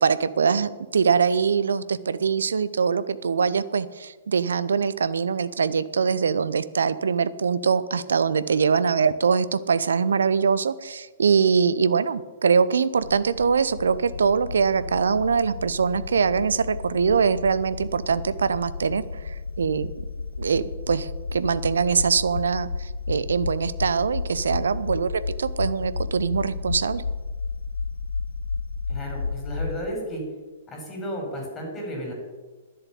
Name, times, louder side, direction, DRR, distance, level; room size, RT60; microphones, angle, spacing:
voice 1, 0.0-19.9 20.4-27.0, right 6 dB, 70° right, 16 dB, 0.6 m, -23 dB
sound 1, 13.0-29.8, left 4 dB, 80° left, 0.5 m, -32 dB
voice 2, 28.9-30.2 30.7-32.1, equal, 15° left, 0 dB, 5.2 m, -33 dB
11.0 x 7.5 x 8.4 m, 1.3 s
figure-of-eight pair, 115°, 0 cm